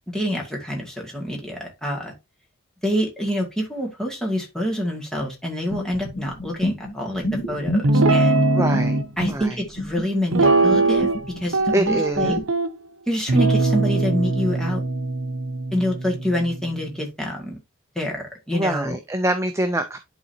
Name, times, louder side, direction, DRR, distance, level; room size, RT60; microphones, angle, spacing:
voice 1, 0.1-2.1 2.8-8.4 9.2-11.1 11.4-12.4 13.1-14.8 15.7-17.6 18.0-19.0, equal, 5° left, 1.9 m, -26 dB
sound 1, 5.7-12.5, left 1 dB, 55° left, 1.6 m, -29 dB
Guitar, 7.8-9.0 10.3-11.2 11.5-12.7 13.3-16.8, right 2 dB, 75° right, 0.8 m, -21 dB
voice 2, 8.5-9.0 9.3-9.6 11.7-12.4 18.5-20.0, right 1 dB, 15° right, 0.5 m, -24 dB
11.0 x 4.0 x 2.7 m
head